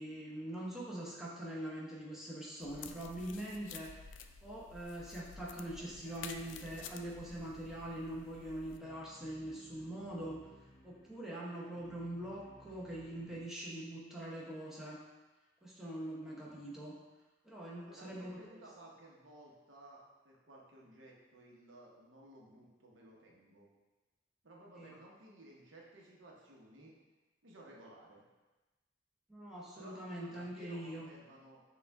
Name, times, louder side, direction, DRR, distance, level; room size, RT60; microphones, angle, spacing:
voice 1, 0.0-4.0 4.4-10.4 10.8-15.0 15.6-16.9 17.4-18.4 24.8-25.0 29.3-31.1, right 1 dB, ahead, -6 dB, 0.8 m, -43 dB
sound 1, 2.6-8.8, left 6 dB, 70° left, 0.3 m, -51 dB
sound 2, 5.6-13.4, equal, 45° left, 1.0 m, -61 dB
voice 2, 17.8-23.7 24.4-27.0 27.4-28.2 29.7-31.6, right 1 dB, 80° right, -3 dB, 0.9 m, -57 dB
6.5 x 2.4 x 3.4 m, 1.1 s
head